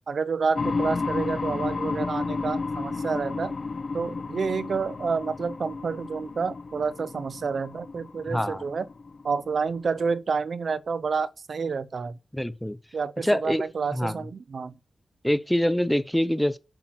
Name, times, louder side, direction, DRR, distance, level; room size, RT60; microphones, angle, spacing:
voice 1, 0.1-3.5 3.9-8.9 9.2-12.2 12.9-14.7, right 5 dB, 55° right, 0.7 m, -29 dB
sound 1, 0.6-10.1, left 4 dB, 40° left, 0.7 m, -32 dB
voice 2, 8.3-8.6 12.3-12.8 13.2-13.6 13.9-14.1 15.2-16.6, equal, 5° left, 0.7 m, -24 dB
8.6 x 7.9 x 6.1 m
wide cardioid pair, 175°, 0 cm